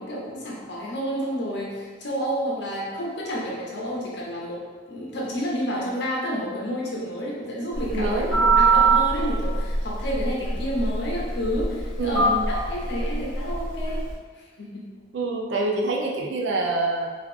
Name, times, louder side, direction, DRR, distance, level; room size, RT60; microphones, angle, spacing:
voice 1, 0.0-4.6 4.9-8.2 8.5-14.0 14.4-14.9, equal, 60° left, -4 dB, 0.8 m, -30 dB
Telephone, 7.7-14.1, right 3 dB, ahead, 1.1 m, -23 dB
voice 2, 7.9-8.6 12.0-12.5 15.1-17.1, right 2 dB, 65° right, 0 dB, 0.4 m, -26 dB
3.1 x 2.5 x 3.4 m, 1.5 s
head